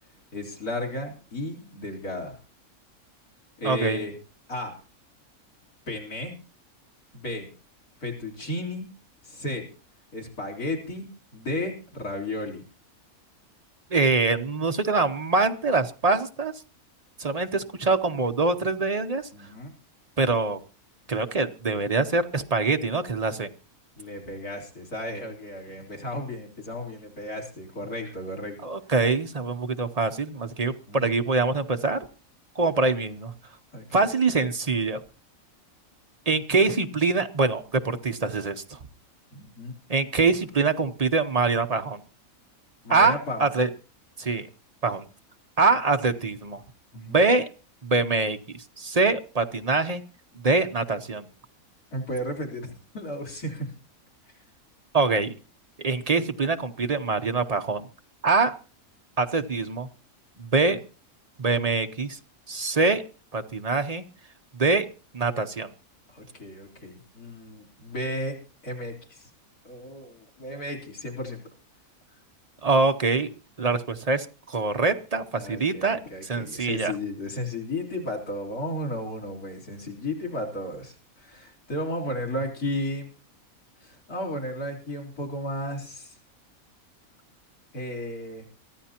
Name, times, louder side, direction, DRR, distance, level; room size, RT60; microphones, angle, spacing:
voice 1, 0.3-2.4 3.6-4.1 4.5-4.8 5.9-6.4 7.1-7.5 8.0-8.9 9.2-9.7 10.1-12.6 19.3-19.7 24.0-28.6 30.9-31.1 33.7-33.9 39.3-39.7 42.8-43.6 46.9-47.2 51.9-53.7 66.1-68.4 68.6-69.3 69.6-71.4 75.4-83.1 83.8-86.2 87.7-88.5, left 1 dB, 80° left, -1 dB, 4.2 m, -34 dB
voice 2, 3.6-4.0 13.9-16.5 17.2-19.2 20.2-20.6 21.1-23.5 28.6-32.0 32.6-33.3 33.9-35.0 36.3-38.8 39.9-42.0 42.9-43.7 44.2-44.5 44.8-45.0 45.6-46.6 47.0-47.5 47.8-50.0 50.4-51.3 54.9-55.3 55.8-57.9 58.2-58.5 59.2-59.9 60.4-60.8 61.4-62.2 62.5-63.0 63.3-64.0 64.5-64.9 65.1-65.7 72.6-73.3 73.6-76.9, right 3 dB, 35° right, 8 dB, 0.7 m, -24 dB
23.5 x 14.0 x 2.9 m, 0.36 s
omnidirectional pair, 1.6 m